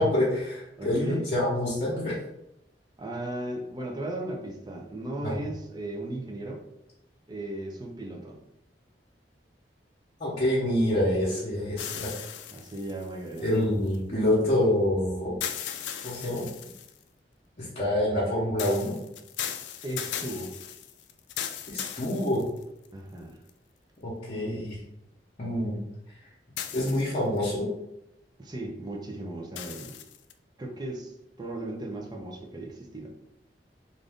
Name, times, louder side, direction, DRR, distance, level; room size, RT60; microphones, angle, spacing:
voice 1, 0.0-2.1 5.2-5.4 10.2-12.1 13.4-15.3 16.0-16.4 17.6-19.0 21.7-22.5 24.0-24.8 25.4-25.8 26.7-27.7, left 1 dB, 40° left, -9 dB, 0.9 m, -26 dB
voice 2, 0.8-1.3 3.0-6.6 7.3-8.4 12.5-13.6 19.8-20.6 22.9-23.4 28.4-30.0 30.6-33.1, right 1 dB, 25° right, 0 dB, 0.5 m, -36 dB
sound 1, 11.8-14.0 15.4-17.0 18.6-22.9 23.5-23.6 26.6-27.4 29.6-30.3, left 9 dB, 80° left, 0.3 m, -37 dB
2.6 x 2.5 x 3.4 m, 0.85 s
head